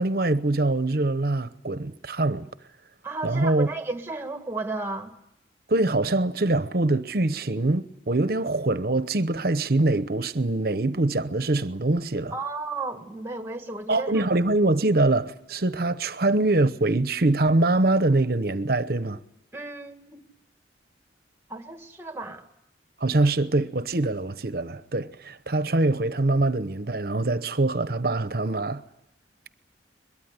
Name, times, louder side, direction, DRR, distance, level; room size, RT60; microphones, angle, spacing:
voice 1, 0.0-2.5 3.2-3.7 5.7-12.4 13.9-19.2 23.0-28.8, right 2 dB, 55° right, 0.9 m, -24 dB
voice 2, 3.0-5.1 12.3-14.2 19.5-20.3 21.5-22.5, right 3 dB, 15° right, 1.6 m, -33 dB
22.0 x 22.0 x 9.6 m
head